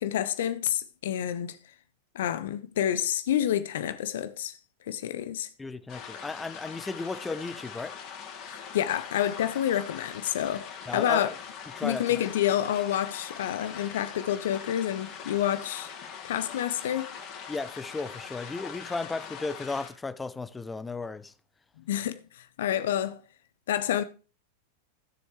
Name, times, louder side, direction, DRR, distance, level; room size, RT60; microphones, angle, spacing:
voice 1, 0.0-1.6 2.1-4.6 4.9-5.5 8.5-11.3 11.8-15.9 16.2-17.1 21.9-23.2 23.7-24.0, left 11 dB, 60° left, 0.6 m, -28 dB
voice 2, 5.6-7.9 10.9-11.3 11.8-12.2 17.5-21.3, left 3 dB, 10° left, 0.7 m, -35 dB
sound 1, 5.9-19.9, left 7 dB, 35° left, 2.7 m, -42 dB
15.0 x 7.2 x 3.2 m
figure-of-eight pair, 90°, 0 cm